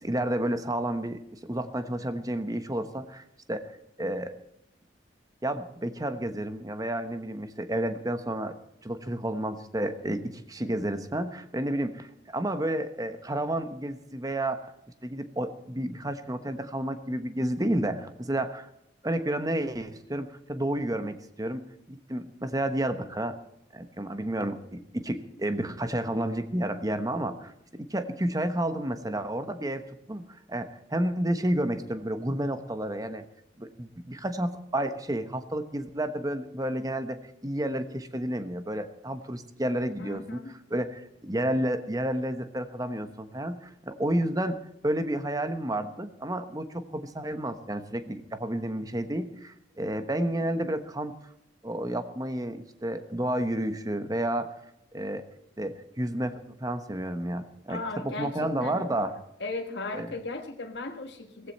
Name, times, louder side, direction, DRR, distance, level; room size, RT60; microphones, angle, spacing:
voice 1, 0.0-3.7 4.0-4.4 5.4-8.6 8.8-14.7 15.0-18.7 19.0-21.6 21.9-23.3 23.7-30.2 30.5-33.2 33.6-37.2 37.4-40.4 40.7-44.6 44.8-51.1 51.6-54.5 54.9-55.2 55.6-59.1 59.9-60.2, right 1 dB, 20° right, 9 dB, 1.1 m, -31 dB
voice 2, 40.0-40.5 57.7-59.0 59.4-61.5, left 3 dB, 65° left, 4 dB, 1.5 m, -37 dB
16.5 x 15.5 x 4.3 m, 0.78 s
head